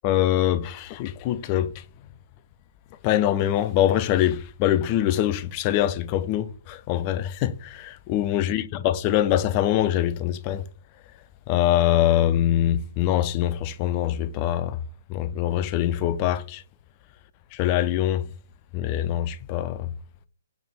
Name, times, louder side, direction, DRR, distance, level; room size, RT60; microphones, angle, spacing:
voice 1, 0.0-1.7 3.0-10.6 11.5-14.8 15.1-16.6 17.5-18.2 18.7-19.9, left 12 dB, 30° left, 0.3 m, -23 dB
4.4 x 3.4 x 3.5 m
figure-of-eight pair, 130°, 0 cm